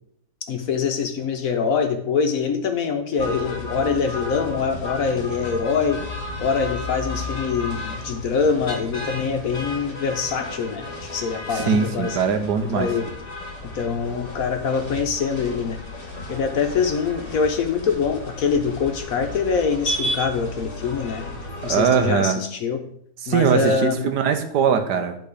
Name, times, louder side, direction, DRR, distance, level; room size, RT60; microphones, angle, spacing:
voice 1, 0.5-6.0 6.4-12.2 12.7-13.1 13.7-15.8 16.3-21.3 21.6-22.8 23.3-24.1, left 5 dB, 65° left, 6 dB, 1.0 m, -24 dB
sound 1, 3.2-22.0, left 1 dB, 30° left, 1.9 m, -33 dB
voice 2, 11.5-12.9 21.6-22.4 23.2-25.2, right 6 dB, 75° right, 7 dB, 1.4 m, -21 dB
10.5 x 3.8 x 4.9 m, 0.68 s
omnidirectional pair, 1.9 m